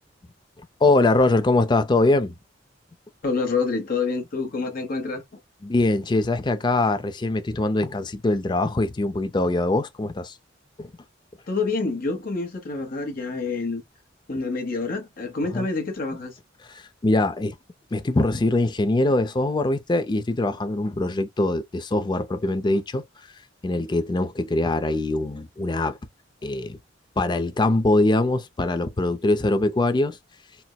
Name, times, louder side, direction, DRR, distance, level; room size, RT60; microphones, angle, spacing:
voice 1, 0.8-2.3 5.6-10.3 10.8-10.9 15.5-15.7 16.7-17.6 17.9-23.0 23.6-26.0 26.4-26.8 27.2-30.2, left 2 dB, 25° left, 0.4 m, -22 dB
voice 2, 3.2-5.2 11.5-13.8 14.3-16.3, left 4 dB, 50° left, 0.9 m, -27 dB
4.2 x 2.1 x 2.2 m
head